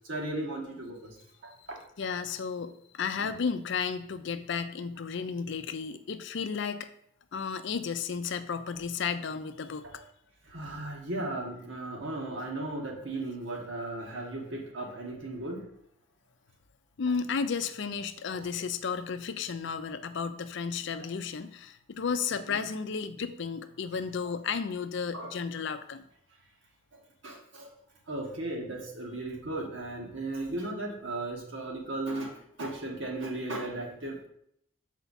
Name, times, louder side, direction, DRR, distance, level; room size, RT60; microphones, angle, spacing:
voice 1, 0.0-1.1 3.2-3.3 9.9-10.0 10.5-15.7 18.3-18.4 25.1-25.3 27.2-27.7 28.1-32.3 32.6-34.3, right 2 dB, 70° right, 0 dB, 1.5 m, -36 dB
voice 2, 2.0-6.9 7.3-9.9 17.0-26.1, left 6 dB, 65° left, 10 dB, 0.5 m, -33 dB
7.0 x 4.4 x 4.1 m, 0.72 s
head